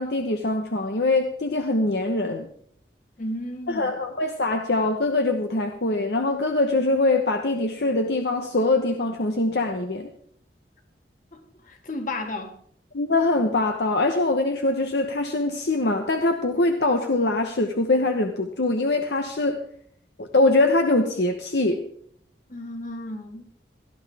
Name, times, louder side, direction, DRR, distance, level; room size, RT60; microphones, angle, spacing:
voice 1, 0.0-2.5 3.7-10.1 12.9-19.6 20.2-21.8, left 2 dB, 65° left, 5 dB, 1.0 m, -23 dB
voice 2, 3.2-3.9 11.3-11.4 11.6-12.6 22.5-23.4, left 1 dB, 50° left, 4 dB, 2.0 m, -33 dB
17.5 x 12.5 x 3.5 m, 0.63 s
head